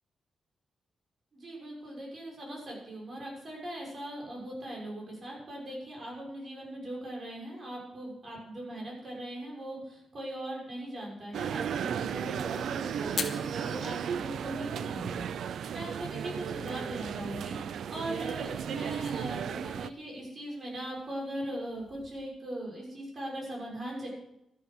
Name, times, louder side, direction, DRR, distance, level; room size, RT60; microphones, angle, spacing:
voice 1, 1.3-24.1, right 1 dB, 35° right, -2 dB, 6.5 m, -40 dB
sound 1, 11.3-19.9, right 8 dB, 80° right, 0.5 m, -35 dB
Fire, 13.0-22.2, left 4 dB, 35° left, 1.9 m, -46 dB
13.0 x 11.0 x 6.3 m, 0.82 s
wide cardioid pair, 145°, 0 cm